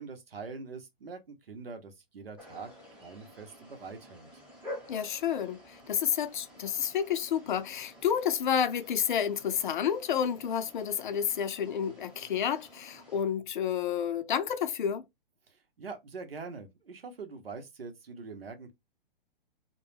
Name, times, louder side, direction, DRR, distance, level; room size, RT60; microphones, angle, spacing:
voice 1, 0.0-2.7 3.0-4.3 15.5-18.7, right 4 dB, 80° right, 0.8 m, -44 dB
sound 1, 2.4-13.2, left 1 dB, 5° right, 0.9 m, -50 dB
voice 2, 4.9-15.0, left 8 dB, 55° left, 0.4 m, -30 dB
2.2 x 2.1 x 3.2 m
figure-of-eight pair, 120°, 29 cm